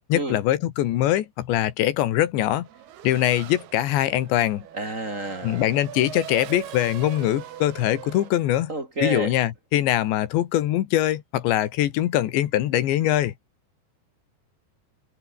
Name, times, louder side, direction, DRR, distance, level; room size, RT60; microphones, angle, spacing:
voice 1, 0.1-2.7 3.0-4.6 5.4-8.7 9.0-13.3, left 13 dB, 75° left, 3.7 m, -22 dB
Race car auto racing / Accelerating revving vroom, 2.6-8.3, right 11 dB, 65° right, 3.6 m, -41 dB
voice 2, 4.7-5.6 8.7-9.3, right 2 dB, 15° right, 3.9 m, -29 dB
omnidirectional pair, 5.3 m